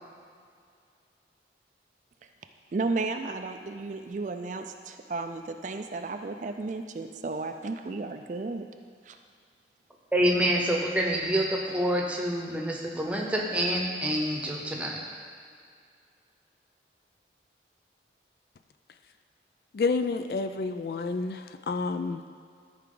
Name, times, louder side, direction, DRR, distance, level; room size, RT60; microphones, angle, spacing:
voice 1, 2.7-8.7 9.0-9.2, right 3 dB, 45° right, 6 dB, 0.4 m, -33 dB
voice 2, 10.1-15.0, equal, 5° right, -1 dB, 0.9 m, -27 dB
voice 3, 19.7-21.4 21.7-22.2, left 4 dB, 55° left, 9 dB, 0.3 m, -29 dB
13.5 x 4.7 x 3.9 m, 2.2 s
head